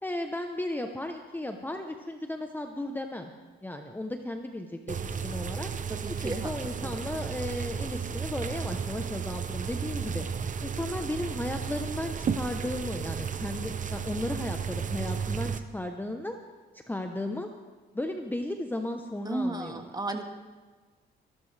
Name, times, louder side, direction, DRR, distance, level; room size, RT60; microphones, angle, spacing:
voice 1, 0.0-3.3 3.6-5.7 6.2-10.3 10.6-16.4 16.9-17.5 17.9-19.9, left 1 dB, 10° left, 5 dB, 0.9 m, -35 dB
sound 1, 4.9-15.6, right 6 dB, 40° right, 0.8 m, -33 dB
voice 2, 5.9-6.5 6.8-7.0 19.3-20.2, right 2 dB, 20° right, 5 dB, 1.7 m, -33 dB
23.5 x 13.0 x 3.4 m, 1.3 s
cardioid pair, 90°, 20 cm